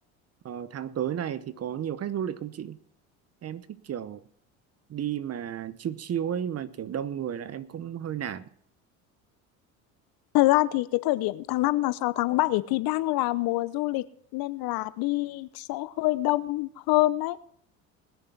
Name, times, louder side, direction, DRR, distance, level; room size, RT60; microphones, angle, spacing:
voice 1, 0.4-2.8 3.4-4.2 4.9-8.4, right 9 dB, 35° right, 16 dB, 1.0 m, -33 dB
voice 2, 10.3-14.0 14.3-17.4, left 18 dB, 60° left, 16 dB, 0.9 m, -25 dB
20.0 x 6.9 x 5.9 m, 0.63 s
hypercardioid pair, 80°, 41 cm